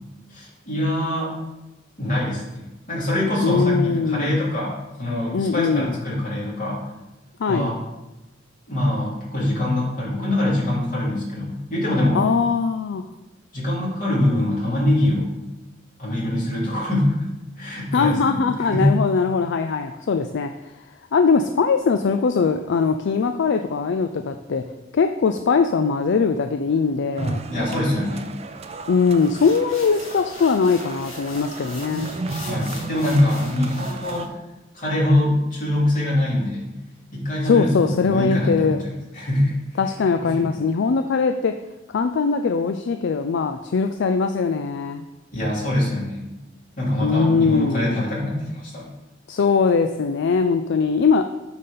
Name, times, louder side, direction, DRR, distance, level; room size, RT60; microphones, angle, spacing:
voice 1, 0.3-1.3 2.0-6.8 7.5-7.8 8.7-12.3 13.5-15.4 16.0-17.2 17.6-18.9 27.5-28.4 32.5-34.4 34.7-36.7 37.1-38.8 39.1-39.8 40.2-40.6 45.3-46.3 46.8-48.9, left 1 dB, 45° left, -5 dB, 3.0 m, -23 dB
voice 2, 3.4-4.4 5.3-6.0 7.4-7.7 12.1-13.0 17.9-20.5 21.1-24.6 24.9-27.4 28.9-32.1 37.4-38.8 39.8-41.5 41.9-45.0 47.0-48.0 49.3-51.2, left 5 dB, 65° left, 7 dB, 0.4 m, -21 dB
sound 1, 27.2-34.3, right 3 dB, 35° right, 0.5 m, -33 dB
sound 2, 29.1-34.3, left 3 dB, 80° left, 1.7 m, -42 dB
8.6 x 4.2 x 5.5 m, 1.0 s
head